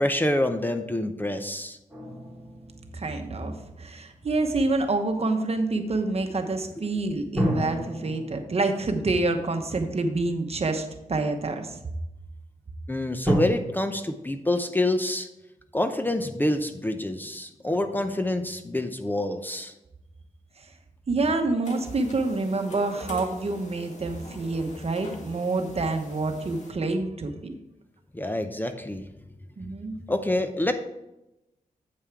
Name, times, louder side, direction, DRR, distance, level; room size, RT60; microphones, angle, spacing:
voice 1, 0.0-1.8 12.9-15.3 15.7-19.7 28.1-29.0 30.1-30.7, left 1 dB, 15° left, 7 dB, 0.7 m, -27 dB
sound 1, 1.9-4.5 7.3-10.7 11.4-11.5 13.2-13.3, equal, ahead, 3.1 m, -33 dB
voice 2, 2.9-11.8 20.6-20.7 21.1-27.5 29.6-30.0, right 3 dB, 50° right, 6 dB, 1.1 m, -27 dB
sound 2, 21.6-26.7, left 2 dB, 60° left, 1.7 m, -44 dB
8.5 x 5.5 x 4.6 m, 0.92 s
cardioid pair, 75°, 14 cm